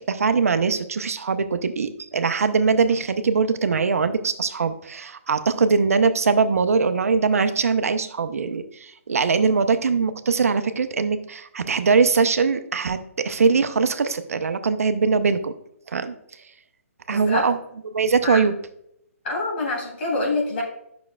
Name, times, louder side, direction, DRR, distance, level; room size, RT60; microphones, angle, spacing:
voice 1, 0.0-15.5 15.9-16.1 17.1-17.6 17.9-18.5, right 5 dB, 75° right, 10 dB, 0.7 m, -21 dB
voice 2, 17.1-17.5 18.2-18.4 19.2-20.6, left 2 dB, 50° left, -3 dB, 3.1 m, -26 dB
10.5 x 6.1 x 2.3 m, 0.75 s
hypercardioid pair, 145°, 8 cm